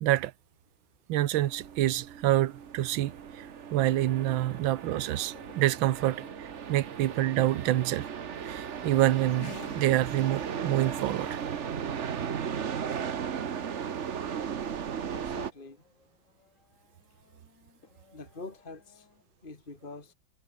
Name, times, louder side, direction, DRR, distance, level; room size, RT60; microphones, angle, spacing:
voice 1, 0.0-0.3 1.1-8.1 8.4-11.4, right 14 dB, 80° right, 1.6 m, -27 dB
sound 1, 1.3-15.5, right 7 dB, 45° right, 1.2 m, -36 dB
Race car auto racing / Accelerating revving vroom, 4.1-19.2, left 4 dB, 40° left, 2.5 m, -55 dB
voice 2, 15.1-15.8 18.1-19.1 19.4-20.1, left 3 dB, 25° left, 2.8 m, -45 dB
omnidirectional pair, 2.1 m